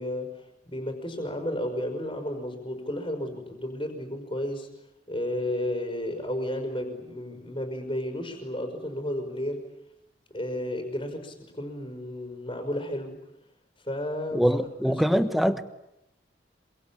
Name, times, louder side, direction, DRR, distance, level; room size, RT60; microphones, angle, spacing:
voice 1, 0.0-4.7 5.1-9.7 10.3-13.2 13.8-14.4 14.9-15.2, left 1 dB, 25° left, 5.0 m, -32 dB
voice 2, 14.3-15.6, equal, ahead, 1.3 m, -23 dB
27.0 x 24.0 x 8.7 m
head